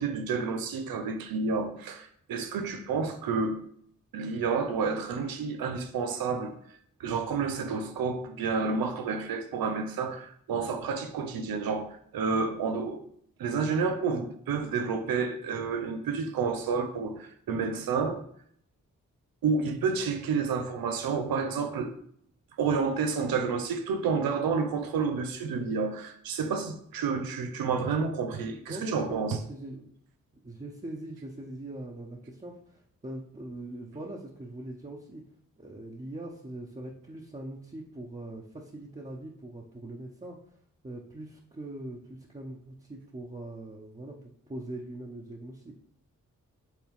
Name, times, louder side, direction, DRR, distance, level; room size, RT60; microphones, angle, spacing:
voice 1, 0.0-3.6 4.1-6.6 7.0-13.0 13.4-18.2 19.4-21.9 22.6-29.4, right 5 dB, 90° right, 0.7 m, -30 dB
voice 2, 28.7-29.9 30.4-35.2 35.6-40.6 40.8-45.7, right 1 dB, 20° right, 1.0 m, -42 dB
7.4 x 3.6 x 3.6 m
supercardioid pair, 40°, 34 cm